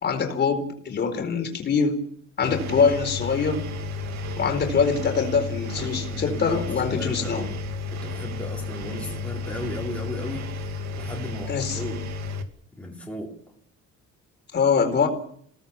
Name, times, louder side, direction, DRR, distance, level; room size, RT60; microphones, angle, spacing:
voice 1, 0.0-2.0 2.4-3.6 4.4-7.5 8.9-9.1 11.5-11.8 14.5-15.1, left 5 dB, 35° left, 6 dB, 4.5 m, -24 dB
Engine, 2.4-12.4, left 3 dB, 65° right, 2.8 m, -32 dB
voice 2, 5.8-7.5 7.9-10.6 11.0-12.1 12.7-13.4, left 1 dB, 5° left, -2 dB, 4.4 m, -36 dB
29.5 x 18.5 x 7.2 m, 0.67 s
cardioid pair, 165°, 30 cm